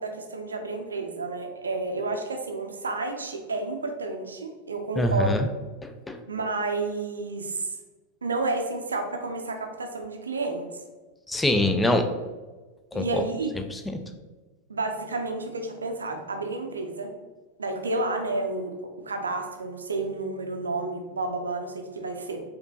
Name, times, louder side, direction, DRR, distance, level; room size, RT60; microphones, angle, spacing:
voice 1, 0.0-5.3 6.3-7.7 8.2-10.7 12.9-13.5 14.7-17.1 17.6-18.7 19.0-22.4, right 3 dB, 75° right, 4 dB, 0.5 m, -30 dB
voice 2, 5.0-5.5 5.8-6.2 11.3-12.1 12.9-13.2 13.7-14.0, left 1 dB, 10° left, 7 dB, 0.4 m, -24 dB
4.9 x 2.9 x 2.8 m, 1.3 s
figure-of-eight pair, 85°, 0 cm